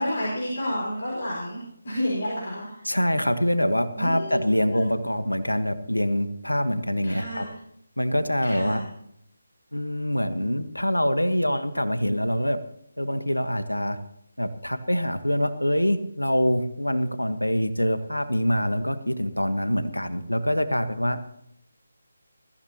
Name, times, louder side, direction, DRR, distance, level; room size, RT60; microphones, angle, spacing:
voice 1, 0.0-2.8 4.0-4.8 7.0-7.5 8.4-8.8, equal, 50° left, -4 dB, 5.5 m, -30 dB
voice 2, 2.8-7.4 8.0-8.8 9.7-12.6 13.0-14.0 14.4-21.2, equal, 85° left, 11 dB, 1.3 m, -25 dB
21.0 x 15.0 x 2.9 m, 0.74 s
figure-of-eight pair, 155°, 0 cm